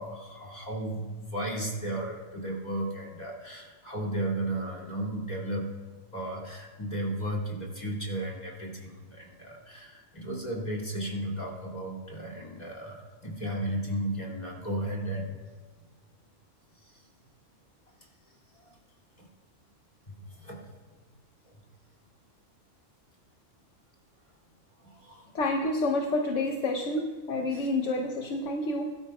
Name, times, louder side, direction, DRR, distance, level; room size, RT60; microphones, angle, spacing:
voice 1, 0.0-5.7 6.1-15.4 16.8-17.0 18.6-18.7 19.2-19.3 20.1-20.6 24.8-25.3 27.5-27.7, right 1 dB, 30° left, -2 dB, 2.7 m, -34 dB
voice 2, 25.3-28.9, left 2 dB, 75° left, 2 dB, 1.2 m, -29 dB
21.5 x 12.5 x 2.3 m, 1.4 s
omnidirectional pair, 1.3 m